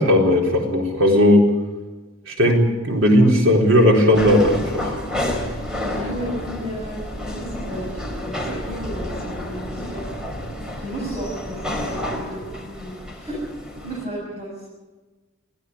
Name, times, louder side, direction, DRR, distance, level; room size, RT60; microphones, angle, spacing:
voice 1, 0.0-1.5 2.3-4.9, left 1 dB, 75° right, 1 dB, 4.2 m, -16 dB
sound 1, 4.1-14.0, left 1 dB, 5° right, 4.0 m, -30 dB
voice 2, 5.6-10.0 10.4-13.4 13.7-14.6, equal, 35° right, -4 dB, 7.1 m, -33 dB
22.0 x 15.5 x 9.5 m, 1.3 s
head